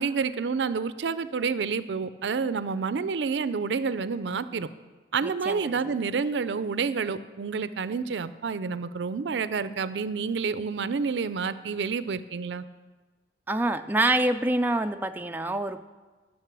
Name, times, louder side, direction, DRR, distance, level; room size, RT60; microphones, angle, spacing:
voice 1, 0.0-4.7 5.1-12.6, right 5 dB, 80° right, 14 dB, 0.4 m, -29 dB
voice 2, 5.2-5.7 13.5-15.9, right 2 dB, 10° right, 7 dB, 0.3 m, -26 dB
12.5 x 6.5 x 6.1 m, 1.3 s
head